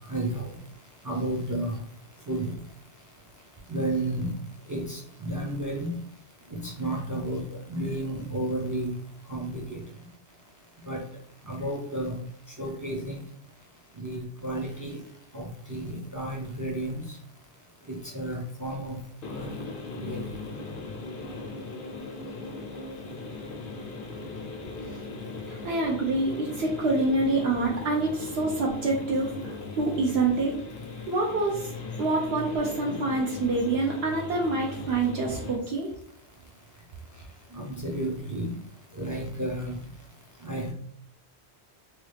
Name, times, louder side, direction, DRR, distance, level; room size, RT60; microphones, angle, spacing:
voice 1, 0.1-0.5 1.0-1.7 2.3-2.5 3.7-4.3 4.7-6.0 6.6-7.4 7.7-8.9 9.3-9.8 10.9-11.0 11.5-12.2 12.6-13.2 14.0-15.0 15.3-17.0 17.9-19.0 19.3-19.5 20.0-20.3 37.5-38.6 38.9-39.8 40.4-40.7, right 1 dB, 30° right, -3 dB, 0.3 m, -32 dB
sound 1, 19.2-35.6, left 3 dB, 60° left, 0.7 m, -38 dB
voice 2, 25.5-30.5 31.1-31.7 32.0-35.9, right 2 dB, 75° right, -1 dB, 0.8 m, -26 dB
3.0 x 2.3 x 3.2 m, 0.64 s
omnidirectional pair, 1.1 m